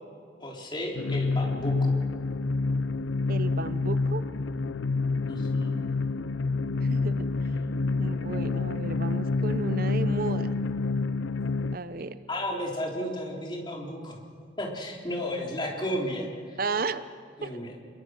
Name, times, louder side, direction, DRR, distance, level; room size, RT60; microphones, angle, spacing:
voice 1, 0.4-1.9 5.3-5.8 12.3-14.2 14.6-16.6 17.4-17.7, equal, 25° left, -1 dB, 3.7 m, -33 dB
sound 1, 1.0-11.8, left 3 dB, 80° left, 0.6 m, -28 dB
voice 2, 3.3-4.2 6.8-7.3 8.0-10.6 11.7-12.2 16.6-17.0 17.4-17.5, right 3 dB, 50° right, 13 dB, 0.7 m, -33 dB
27.0 x 22.5 x 6.5 m, 2.3 s
head